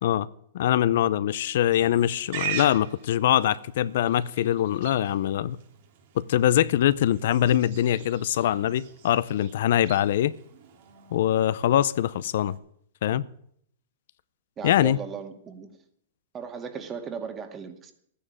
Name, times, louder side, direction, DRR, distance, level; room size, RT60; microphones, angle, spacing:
voice 1, 0.5-5.6 6.2-10.3 11.1-12.6 13.0-13.2 14.6-15.0, left 11 dB, 65° left, 17 dB, 0.6 m, -23 dB
Livestock farm animals working animals, 1.7-12.6, right 9 dB, 60° right, 3.0 m, -42 dB
voice 2, 14.6-15.7 16.3-17.9, right 6 dB, 25° right, 6 dB, 2.1 m, -37 dB
14.0 x 9.9 x 7.5 m, 0.67 s
hypercardioid pair, 125°, 0 cm